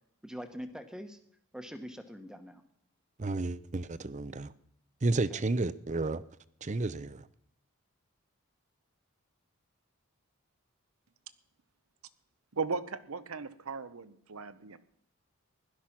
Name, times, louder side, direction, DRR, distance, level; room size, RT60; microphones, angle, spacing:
voice 1, 0.2-1.2 1.5-2.6, equal, 5° right, 1.1 m, -43 dB
voice 2, 3.2-4.5 5.0-6.2 6.6-7.3, right 2 dB, 35° right, 0.6 m, -31 dB
voice 3, 12.5-14.8, right 4 dB, 85° right, 0.9 m, -37 dB
16.5 x 12.0 x 6.0 m
head